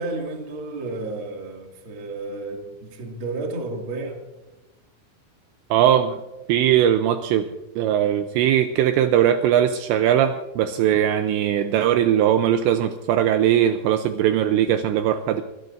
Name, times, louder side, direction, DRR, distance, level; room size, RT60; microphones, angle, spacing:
voice 1, 0.0-4.2, right 2 dB, 45° right, 1.7 m, -32 dB
voice 2, 5.7-6.2 6.5-7.5 7.8-15.4, right 10 dB, 90° right, 2.5 m, -20 dB
23.0 x 17.0 x 2.6 m
omnidirectional pair, 5.8 m